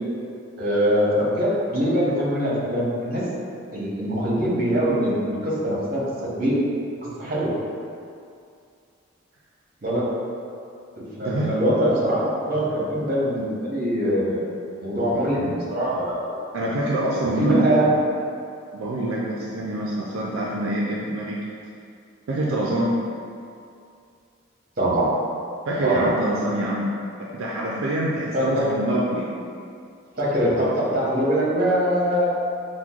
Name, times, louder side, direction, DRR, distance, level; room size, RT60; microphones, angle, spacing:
voice 1, 0.6-3.3 3.7-6.6 7.0-7.5 9.8-10.2 11.0-14.5 14.8-16.7 17.4-17.9 24.8-25.1 25.8-26.1 28.3-28.7 30.2-32.2, equal, 45° right, -6 dB, 0.9 m, -23 dB
voice 2, 16.5-17.7 18.7-21.4 22.3-22.9 25.7-26.9 27.2-29.3, right 1 dB, 75° right, -4 dB, 0.4 m, -25 dB
5.9 x 2.1 x 2.4 m, 2.4 s
head